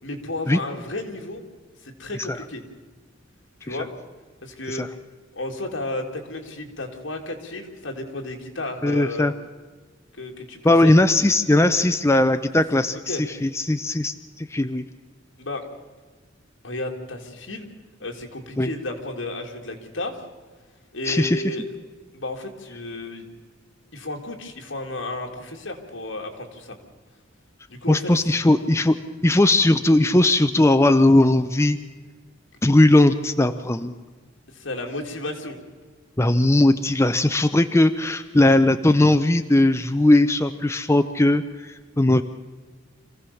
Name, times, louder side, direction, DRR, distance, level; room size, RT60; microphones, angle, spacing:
voice 1, 0.0-1.4 1.8-2.6 3.6-3.9 4.4-4.8 5.3-9.3 10.2-10.9 12.5-12.6 13.1-13.2 15.4-15.6 16.6-17.7 18.0-20.3 20.9-21.7 22.1-23.3 23.9-26.8 27.7-28.1 34.5-35.6, left 2 dB, 75° left, 3 dB, 2.8 m, -33 dB
voice 2, 8.8-9.3 10.6-13.0 13.4-14.8 18.6-18.7 21.0-21.5 27.9-31.8 32.6-33.9 36.2-42.2, left 1 dB, 15° left, 9 dB, 0.6 m, -18 dB
26.0 x 16.0 x 7.0 m, 1.4 s
head